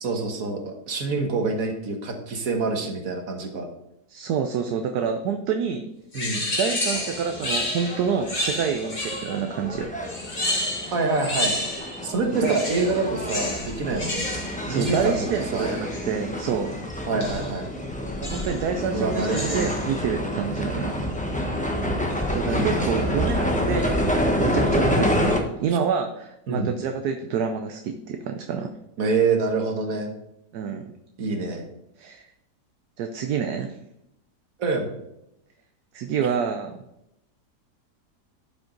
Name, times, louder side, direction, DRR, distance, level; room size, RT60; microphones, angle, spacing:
voice 1, 0.0-3.7 6.1-6.4 10.9-11.5 12.0-14.4 14.7-15.3 15.5-15.7 17.1-17.7 18.9-19.7 22.4-23.0 24.9-25.2 26.5-26.7 29.0-30.1 31.2-31.7 34.6-34.9, right 3 dB, 60° right, 3 dB, 1.8 m, -26 dB
voice 2, 4.1-5.9 6.6-10.0 12.3-12.6 13.9-14.1 14.7-16.8 18.2-20.9 22.3-28.7 30.5-30.9 32.0-32.3 33.0-33.8 35.9-36.8, right 7 dB, 75° right, 6 dB, 1.2 m, -27 dB
sound 1, 6.1-9.5 10.0-12.0 12.3-16.2 17.2-17.6 18.2-18.7 19.1-19.9, left 1 dB, 30° left, 2.2 m, -31 dB
sound 2, 6.9-25.4, equal, 5° left, 0.9 m, -28 dB
11.5 x 5.9 x 3.9 m, 0.84 s
omnidirectional pair, 1.7 m